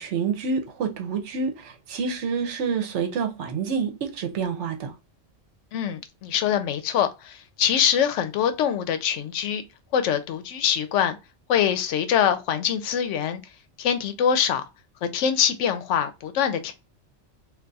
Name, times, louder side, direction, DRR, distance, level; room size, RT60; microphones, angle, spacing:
voice 1, 0.0-5.0, right 5 dB, 75° right, 1.0 m, -28 dB
voice 2, 5.7-9.6 9.9-11.2 11.5-13.4 13.8-14.6 15.0-16.7, left 8 dB, 80° left, 0.9 m, -24 dB
2.5 x 2.3 x 3.9 m
omnidirectional pair, 1.2 m